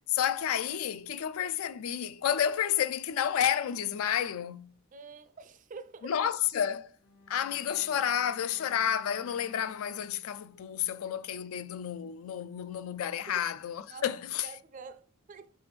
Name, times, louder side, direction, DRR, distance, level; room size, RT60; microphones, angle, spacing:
voice 1, 0.1-4.7 6.0-6.9 7.3-14.5, left 9 dB, 75° left, 0.3 m, -30 dB
voice 2, 4.9-6.1 10.9-11.0 13.9-14.1 14.4-15.5, right 4 dB, 35° right, 0.4 m, -47 dB
Bowed string instrument, 7.0-11.4 11.7-11.8, left 4 dB, 50° left, 0.8 m, -56 dB
5.1 x 3.4 x 3.0 m
head